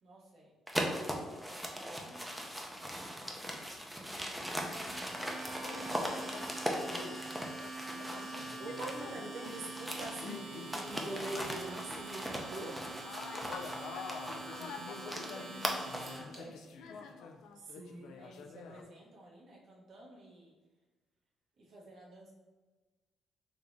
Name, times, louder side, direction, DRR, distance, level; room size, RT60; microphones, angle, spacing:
voice 1, 0.0-0.6 0.9-2.4 4.0-5.5 5.8-7.3 12.3-13.0 14.4-16.8 18.1-20.6 21.6-22.3, right 1 dB, 65° right, -2 dB, 0.9 m, -55 dB
sound 1, 0.7-9.1 9.4-16.2, equal, 5° right, 0.5 m, -39 dB
Domestic sounds home sounds, 4.7-16.4, right 3 dB, 35° right, 0.8 m, -46 dB
sound 2, 5.6-6.5 6.9-12.0 12.3-18.8, left 5 dB, 80° left, 0.3 m, -47 dB
voice 2, 8.1-13.0 17.6-18.2, right 2 dB, 90° right, -1 dB, 0.6 m, -43 dB
3.5 x 2.9 x 2.6 m, 1.2 s
cardioid pair, 90°, 0 cm